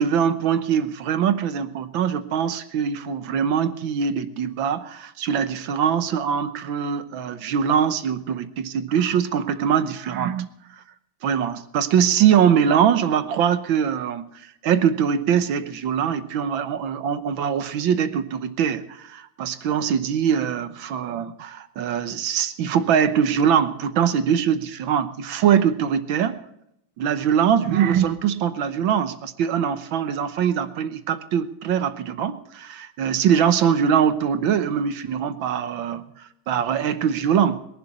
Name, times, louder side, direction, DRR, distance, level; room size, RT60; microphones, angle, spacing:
voice 1, 0.0-10.5 11.2-14.3 14.6-26.4 27.0-36.1 36.5-37.6, right 8 dB, 85° right, 10 dB, 1.7 m, -22 dB
21.5 x 11.5 x 4.3 m, 0.77 s
omnidirectional pair, 2.1 m